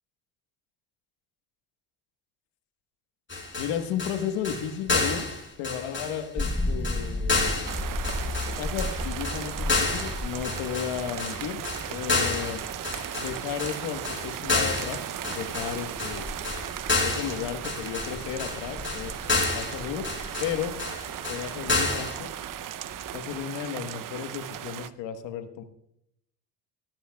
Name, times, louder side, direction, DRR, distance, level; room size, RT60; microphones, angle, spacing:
sound 1, 3.3-22.2, left 3 dB, 25° left, 4.3 m, -30 dB
voice 1, 3.6-5.3 5.6-7.7 8.6-12.6 13.1-16.2 17.0-19.3 19.5-20.1 20.4-20.7 21.3-22.3 23.1-25.6, left 9 dB, 75° left, 8 dB, 1.5 m, -34 dB
sound 2, 6.4-23.4, left 1 dB, 5° left, 0.7 m, -37 dB
sound 3, 7.7-24.9, right 11 dB, 45° right, 0.7 m, -37 dB
18.5 x 13.0 x 2.3 m, 0.76 s
supercardioid pair, 70°, 46 cm